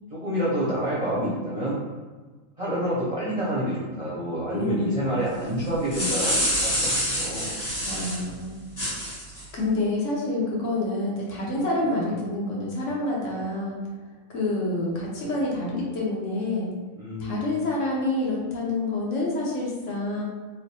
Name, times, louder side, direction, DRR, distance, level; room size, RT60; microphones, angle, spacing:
voice 1, 0.1-1.8 2.6-7.6 11.6-11.7 17.0-17.4, equal, 35° right, -9 dB, 0.6 m, -28 dB
voice 2, 4.5-5.2 7.9-8.6 9.5-13.8 14.3-16.7 17.2-20.2, left 2 dB, 65° left, -4 dB, 1.1 m, -27 dB
sound 1, 5.7-8.2 8.8-9.4, equal, 80° left, 1.6 m, -26 dB
3.1 x 2.2 x 4.0 m, 1.4 s
omnidirectional pair, 1.5 m